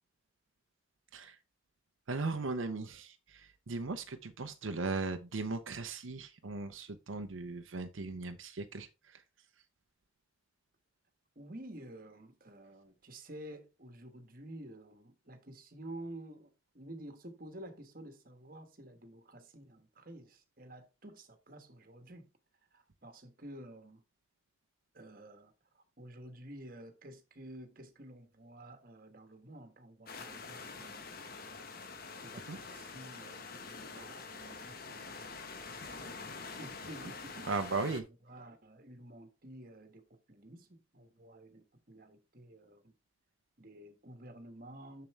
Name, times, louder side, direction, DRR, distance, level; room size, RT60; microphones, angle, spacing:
voice 1, 2.1-9.2 32.5-32.6 37.4-38.0, right 3 dB, 80° right, 0.7 m, -38 dB
voice 2, 11.3-16.5 16.7-22.3 22.7-24.0 24.9-31.2 32.2-36.2 36.6-42.9 43.6-45.1, right 1 dB, 45° right, 1.4 m, -51 dB
sound 1, 30.1-38.0, left 4 dB, 50° left, 1.1 m, -46 dB
7.1 x 6.8 x 3.2 m
head